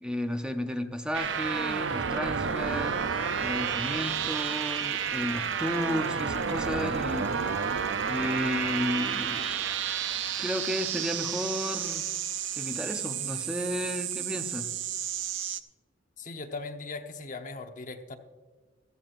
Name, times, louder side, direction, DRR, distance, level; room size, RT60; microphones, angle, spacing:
voice 1, 0.0-9.5 10.4-12.1 12.6-14.7, left 1 dB, 5° right, 6 dB, 0.6 m, -33 dB
sound 1, 1.1-15.6, right 7 dB, 70° right, 0.6 m, -31 dB
sound 2, 4.1-14.2, right 3 dB, 40° right, 3.3 m, -52 dB
voice 2, 16.2-18.2, left 3 dB, 40° left, 4 dB, 1.0 m, -39 dB
16.5 x 13.0 x 2.6 m, 1.4 s
head